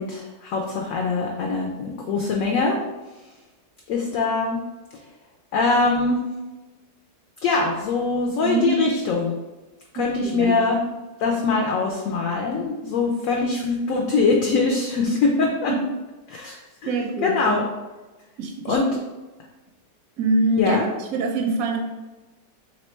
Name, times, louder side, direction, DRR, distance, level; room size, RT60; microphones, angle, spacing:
voice 1, 0.0-2.8 3.9-4.6 5.5-6.2 7.4-9.3 9.9-10.9 11.2-15.7 16.3-17.6 18.7-18.9 20.6-20.8, left 3 dB, 70° left, 0 dB, 0.8 m, -23 dB
voice 2, 8.4-8.7 9.9-10.6 15.7-15.8 16.9-17.6 18.4-18.8 20.2-20.8 21.1-21.8, right 2 dB, 70° right, 1 dB, 0.9 m, -24 dB
3.1 x 3.0 x 4.3 m, 1.1 s
omnidirectional pair, 1.8 m